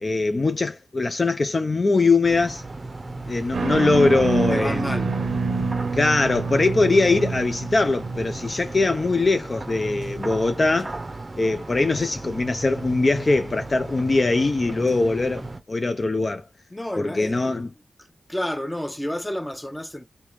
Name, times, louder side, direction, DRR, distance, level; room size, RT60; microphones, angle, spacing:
voice 1, 0.0-2.6 3.3-5.1 5.9-11.0 11.4-16.4 17.0-17.7, left 3 dB, 45° left, 0.5 m, -22 dB
sound 1, 2.2-15.6, right 2 dB, 35° right, 0.6 m, -36 dB
sound 2, 3.5-9.0, right 4 dB, 80° right, 0.5 m, -27 dB
voice 2, 4.5-5.2 16.7-17.5 18.3-20.1, equal, 15° left, 0.7 m, -30 dB
3.4 x 2.7 x 3.1 m
cardioid pair, 55°, 0 cm